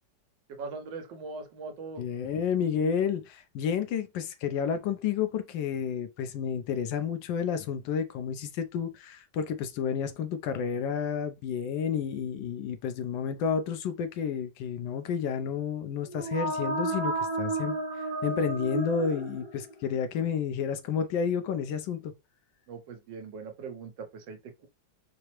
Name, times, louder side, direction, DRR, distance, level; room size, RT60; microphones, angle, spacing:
voice 1, 0.6-2.0 22.7-24.7, right 4 dB, 75° right, 1.4 m, -41 dB
voice 2, 2.0-22.1, left 7 dB, 80° left, 1.2 m, -31 dB
sound 1, 16.0-19.9, right 2 dB, 35° right, 0.5 m, -32 dB
4.6 x 2.0 x 3.0 m
omnidirectional pair, 2.0 m